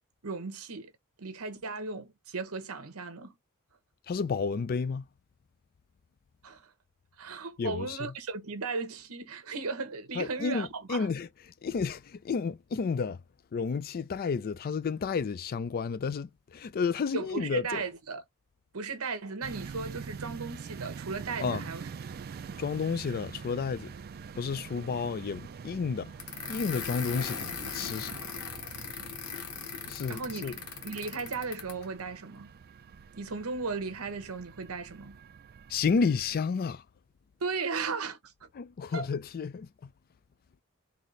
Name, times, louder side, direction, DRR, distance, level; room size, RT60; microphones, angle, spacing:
voice 1, 0.2-0.9 1.2-3.4 6.4-6.7 7.2-11.1 17.1-18.2 18.7-21.9 30.1-32.5 33.2-35.2 37.4-38.5 38.9-39.1, right 4 dB, 70° right, 0.9 m, -36 dB
voice 2, 4.1-5.1 7.6-8.0 10.2-11.3 11.6-13.2 13.5-17.8 21.4-21.6 22.6-23.9 24.4-26.1 26.5-28.1 29.9-30.6 35.7-36.8 38.6-39.9, left 5 dB, 40° left, 0.3 m, -31 dB
sound 1, 19.4-36.4, right 5 dB, 45° right, 0.3 m, -45 dB
sound 2, 26.2-31.8, left 6 dB, 85° left, 1.0 m, -39 dB
4.0 x 2.8 x 3.1 m
head